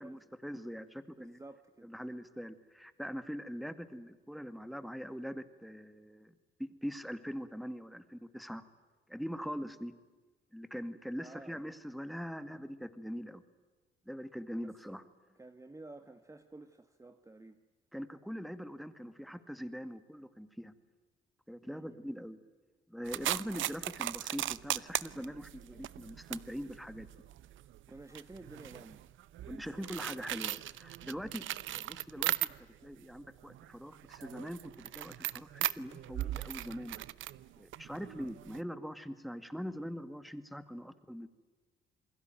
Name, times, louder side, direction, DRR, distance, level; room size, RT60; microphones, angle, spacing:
voice 1, 0.0-1.4 1.8-8.6 9.1-9.9 10.5-13.4 14.1-15.0 17.9-20.7 21.5-22.4 22.9-27.1 29.5-37.0 37.6-41.3, equal, ahead, 11 dB, 2.1 m, -42 dB
voice 2, 1.2-1.9 11.2-11.6 15.3-17.6 21.6-22.0 27.7-29.1, right 2 dB, 15° right, 8 dB, 1.5 m, -52 dB
sound 1, 23.1-32.9 33.2-38.6, right 14 dB, 75° right, 0.8 m, -39 dB
29.0 x 21.0 x 9.3 m, 1.3 s
cardioid pair, 90°, 20 cm